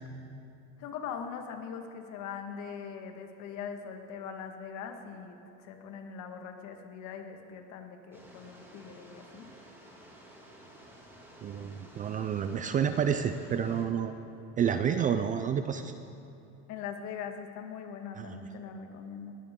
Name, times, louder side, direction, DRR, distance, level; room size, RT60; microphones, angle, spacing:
voice 1, 0.8-9.5 16.7-19.3, left 7 dB, 50° left, 5 dB, 1.8 m, -41 dB
sound 1, 8.1-13.9, right 1 dB, 5° right, 2.4 m, -53 dB
voice 2, 11.4-14.1 14.6-15.9 18.1-18.4, right 8 dB, 25° right, 9 dB, 0.4 m, -29 dB
20.5 x 16.0 x 3.8 m, 2.7 s
supercardioid pair, 145°, 35 cm